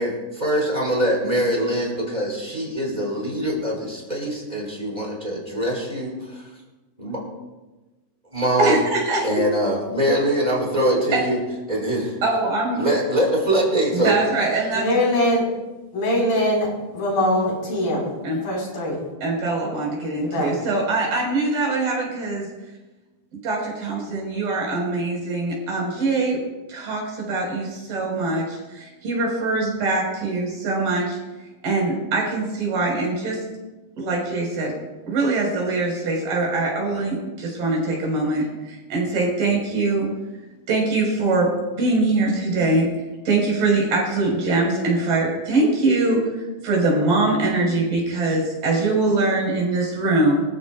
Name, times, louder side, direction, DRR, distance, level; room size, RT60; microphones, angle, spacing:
voice 1, 0.0-6.1 7.0-7.2 8.3-8.8 9.2-11.4 11.7-12.2 12.8-14.3, right 1 dB, 10° right, -3 dB, 4.9 m, -23 dB
voice 2, 8.6-9.3 11.1-11.2 12.2-12.8 13.9-14.9 18.2-18.4 19.2-22.5 23.4-26.4 26.7-31.2 31.6-33.4 34.0-34.7 35.1-40.1 40.7-41.5 41.8-42.9 43.2-50.4, right 2 dB, 70° right, -2 dB, 6.6 m, -22 dB
voice 3, 14.7-15.5 15.9-18.1 18.4-19.0 20.2-20.6, left 1 dB, 65° left, -3 dB, 6.2 m, -22 dB
25.5 x 15.0 x 2.4 m, 1.1 s
omnidirectional pair, 4.4 m